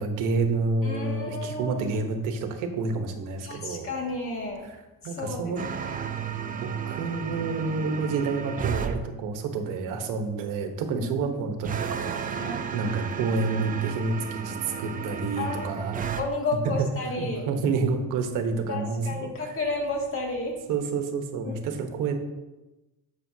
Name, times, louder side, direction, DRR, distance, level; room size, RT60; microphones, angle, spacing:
voice 1, 0.0-3.9 4.6-4.8 5.0-5.6 6.6-12.3 12.7-16.0 16.6-19.6 20.7-22.2, right 4 dB, 60° right, 6 dB, 1.2 m, -29 dB
voice 2, 0.8-1.8 3.4-4.6 5.2-5.5 5.8-6.0 11.0-11.1 12.3-12.6 15.4-15.7 16.2-17.5 18.7-20.5 21.4-21.5, left 2 dB, 40° left, 0 dB, 2.2 m, -31 dB
sound 1, 5.6-9.0 11.6-16.2, right 7 dB, 25° right, 0.5 m, -32 dB
9.1 x 7.0 x 2.8 m, 1.0 s
cardioid pair, 120°, 35 cm